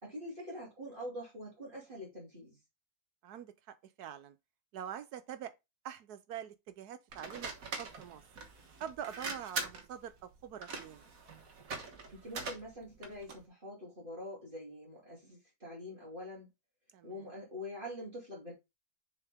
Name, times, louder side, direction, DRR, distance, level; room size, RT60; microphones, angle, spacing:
voice 1, 0.0-2.6 12.1-16.5 17.0-18.5, left 1 dB, 30° right, 3.2 m, -45 dB
voice 2, 3.2-4.4 4.7-5.5 5.8-8.2 8.8-11.0 16.9-17.2, right 9 dB, 80° right, 1.4 m, -45 dB
sound 1, 7.1-13.5, right 4 dB, 60° right, 1.7 m, -43 dB
6.7 x 4.6 x 3.5 m
omnidirectional pair, 1.7 m